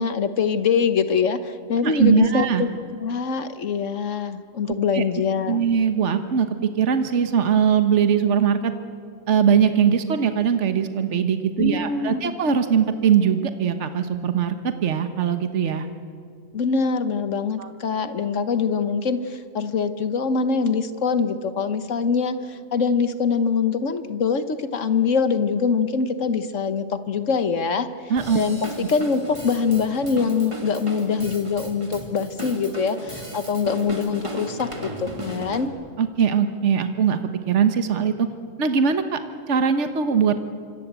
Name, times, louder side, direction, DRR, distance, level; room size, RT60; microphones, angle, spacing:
voice 1, 0.0-5.6 11.6-12.3 16.5-27.9 28.3-35.7, left 5 dB, 70° left, 11 dB, 1.5 m, -24 dB
voice 2, 1.8-2.6 4.9-5.0 5.5-8.7 9.3-15.9 17.6-17.7 28.1-28.4 36.0-37.2 37.5-38.3 38.6-39.2 39.5-40.4, right 7 dB, 65° right, 9 dB, 1.5 m, -21 dB
Drum kit / Drum, 28.2-35.7, right 1 dB, 25° right, 2.5 m, -35 dB
25.5 x 25.5 x 8.2 m, 2.3 s
omnidirectional pair, 1.3 m